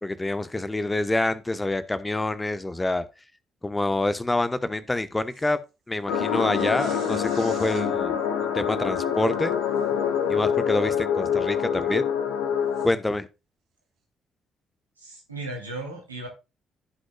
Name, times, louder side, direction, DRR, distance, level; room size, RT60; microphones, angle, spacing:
voice 1, 0.0-3.0 3.6-5.6 5.9-8.2 8.5-9.5 10.3-12.0 12.8-13.3, left 2 dB, 15° left, 1.0 m, -26 dB
sound 1, 5.3-5.5 6.5-7.9 9.8-9.9 10.4-10.5 12.7-12.9, right 5 dB, 60° right, 2.9 m, -46 dB
sound 2, 6.1-12.9, left 8 dB, 65° left, 1.2 m, -26 dB
voice 2, 15.0-16.3, right 2 dB, 85° right, 2.6 m, -36 dB
16.0 x 6.4 x 2.3 m
figure-of-eight pair, 40°, 0 cm